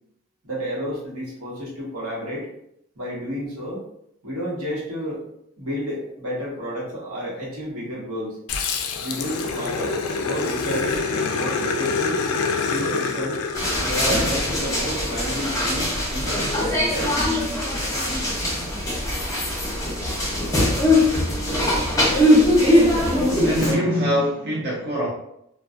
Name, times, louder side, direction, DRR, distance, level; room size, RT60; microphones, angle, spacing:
voice 1, 0.4-2.5 3.0-3.8 4.2-5.2 5.6-8.4 9.0-12.2 12.7-13.4 14.0-17.2, equal, 80° right, -5 dB, 1.0 m, -31 dB
Growling, 8.5-15.2, left 4 dB, 80° left, 0.3 m, -26 dB
sound 1, 13.5-23.7, left 1 dB, 15° left, 0.6 m, -21 dB
voice 2, 17.3-17.8 18.3-18.4 23.2-25.1, equal, 50° right, -6 dB, 0.5 m, -25 dB
2.5 x 2.2 x 2.3 m, 0.77 s
head